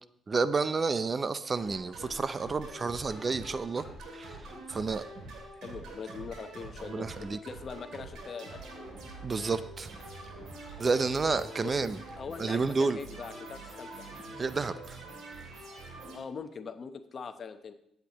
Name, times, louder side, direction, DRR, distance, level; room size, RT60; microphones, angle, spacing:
voice 1, 0.3-3.9 4.1-5.0 6.9-7.4 9.2-9.9 10.8-12.0 12.4-13.0 14.4-15.0, right 4 dB, 35° right, 13 dB, 0.5 m, -30 dB
sound 1, 1.6-16.2, right 2 dB, 80° right, 2.8 m, -45 dB
voice 2, 5.5-8.9 11.6-11.8 12.2-14.1 16.0-17.7, left 5 dB, 45° left, 8 dB, 0.9 m, -42 dB
15.5 x 8.1 x 3.0 m, 0.76 s
cardioid pair, 90°, 0 cm